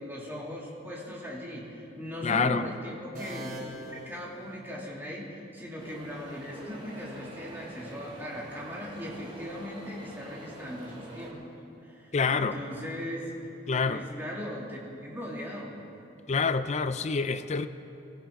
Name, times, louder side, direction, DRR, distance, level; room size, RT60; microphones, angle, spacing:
voice 1, 0.0-11.5 11.8-13.3 13.8-15.8, equal, 10° right, -4 dB, 2.7 m, -39 dB
voice 2, 2.2-2.6 12.1-12.6 13.7-14.0 16.3-17.7, left 5 dB, 35° left, 12 dB, 0.5 m, -27 dB
sound 1, 3.1-5.0, equal, 50° right, 3.8 m, -43 dB
sound 2, 5.8-11.3, right 1 dB, 25° right, 2.6 m, -46 dB
24.0 x 15.0 x 3.8 m, 2.8 s
head